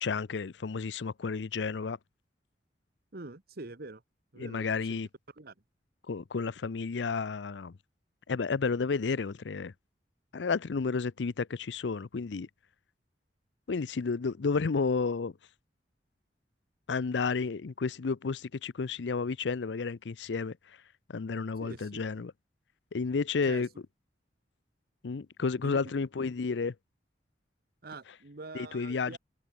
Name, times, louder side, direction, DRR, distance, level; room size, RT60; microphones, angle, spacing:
voice 1, 0.0-2.0 4.4-5.1 6.1-7.7 8.3-9.7 10.3-12.5 13.7-15.3 16.9-20.6 21.1-22.3 22.9-23.7 25.0-26.7 28.5-29.2, left 4 dB, 80° left, 0.5 m, -31 dB
voice 2, 3.1-4.0 4.3-5.0 5.4-5.5 21.6-22.1 23.5-23.6 25.6-25.8 27.8-29.2, right 3 dB, 60° right, 1.3 m, -45 dB
head